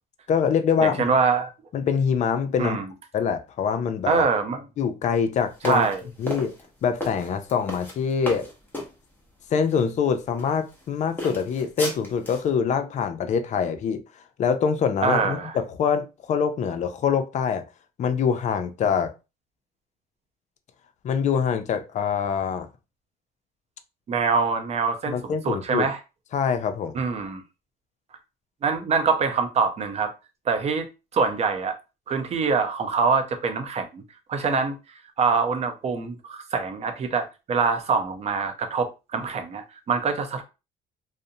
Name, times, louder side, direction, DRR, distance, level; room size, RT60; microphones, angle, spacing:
voice 1, 0.3-1.1 1.7-2.8 3.1-4.2 4.8-5.9 6.2-6.5 6.8-8.5 9.5-14.0 14.4-17.6 18.0-19.1 21.0-22.7 25.1-25.9 26.3-26.9, left 6 dB, 45° left, 0.4 m, -24 dB
voice 2, 0.8-1.5 2.6-2.9 4.1-4.6 5.6-6.0 15.0-15.6 24.1-26.0 26.9-27.4 28.6-30.1 30.5-30.9 31.1-31.8 32.1-34.0 34.3-34.7 35.2-40.4, right 5 dB, 40° right, 0.5 m, -24 dB
sound 1, 5.6-8.9 9.7-9.8 10.4-10.8 11.2-12.5, left 1 dB, 10° left, 0.8 m, -34 dB
2.5 x 2.0 x 2.7 m
cardioid pair, 110°, 17 cm